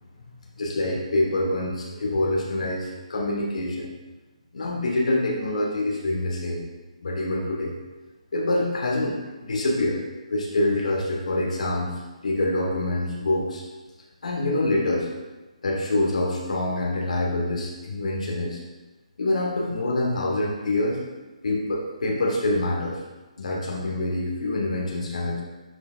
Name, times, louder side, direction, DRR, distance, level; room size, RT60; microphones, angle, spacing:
voice 1, 0.6-3.9 4.5-6.6 7.0-7.7 8.3-9.2 9.4-10.0 10.3-11.9 12.2-13.6 14.2-15.1 15.6-18.6 19.2-21.0 21.4-23.0 23.4-25.4, left 1 dB, 75° left, -1 dB, 1.4 m, -25 dB
10.0 x 4.8 x 2.5 m, 1.2 s
hypercardioid pair, 160°, 4 cm